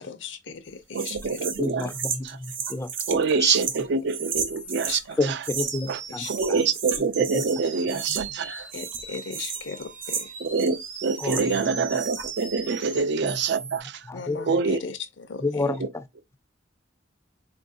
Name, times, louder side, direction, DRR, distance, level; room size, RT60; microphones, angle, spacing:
voice 1, 0.0-1.5 4.9-5.2 5.8-6.3 8.7-10.3 14.1-15.7, left 5 dB, 70° left, 0.6 m, -37 dB
voice 2, 0.9-1.9 2.2-2.4 3.1-5.5 5.9-6.0 6.3-8.7 10.4-14.1 14.5-14.8 15.7-15.9, right 5 dB, 65° right, 0.4 m, -26 dB
Pages Flip Fast-St, 0.9-5.0 5.4-5.9 6.2-7.6 7.9-8.4 8.7-11.6 11.9-12.5, right 7 dB, 85° right, 0.8 m, -33 dB
voice 3, 1.6-3.6 5.2-6.3 7.3-7.4 11.2-11.4 14.1-14.4 15.4-15.8, left 3 dB, 15° left, 0.4 m, -29 dB
sound 1, 3.8-3.9 4.1-4.8 5.5-6.7 7.1-13.8, right 6 dB, 45° right, 0.8 m, -39 dB
4.5 x 2.5 x 2.5 m
head